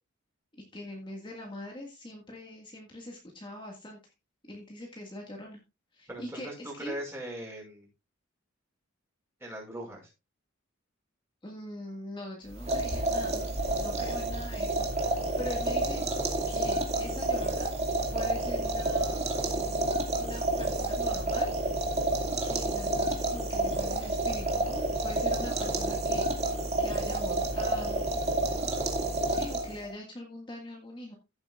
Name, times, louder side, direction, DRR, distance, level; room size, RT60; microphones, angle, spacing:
voice 1, 0.7-4.1 4.5-5.6 5.9-7.0 11.4-13.5 13.8-16.0 16.5-17.7 18.1-19.9 20.2-21.5 22.4-28.2 29.3-31.1, left 1 dB, 25° left, 0 dB, 1.8 m, -43 dB
voice 2, 6.1-7.9 9.4-10.1, right 1 dB, 15° right, -1 dB, 5.6 m, -40 dB
sound 1, 12.5-29.9, right 2 dB, 30° right, 2.2 m, -29 dB
15.5 x 7.9 x 2.4 m, 0.27 s
head